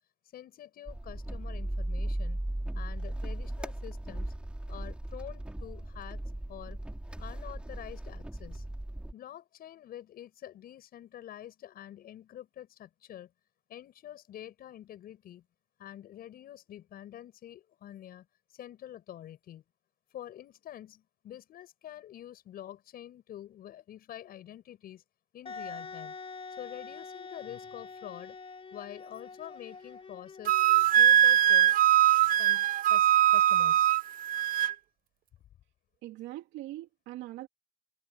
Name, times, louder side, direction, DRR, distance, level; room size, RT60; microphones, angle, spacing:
voice 1, 0.3-2.4 2.7-4.3 4.7-6.8 7.2-8.7 9.1-13.3 13.7-15.4 15.8-18.3 18.5-19.6 20.1-25.0 25.3-26.2 26.6-28.4 28.7-31.8 32.4-33.9, left 11 dB, 55° left, 7.5 m, -47 dB
sound 1, 0.9-9.1, right 1 dB, 5° right, 6.0 m, -37 dB
Wind instrument woodwind instrument, 25.5-31.0, left 4 dB, 30° left, 4.4 m, -45 dB
Wind instrument woodwind instrument 2, 30.5-34.7, right 11 dB, 50° right, 0.8 m, -22 dB
voice 2, 36.0-37.5, right 16 dB, 70° right, 3.0 m, -42 dB
cardioid pair, 115°, 19 cm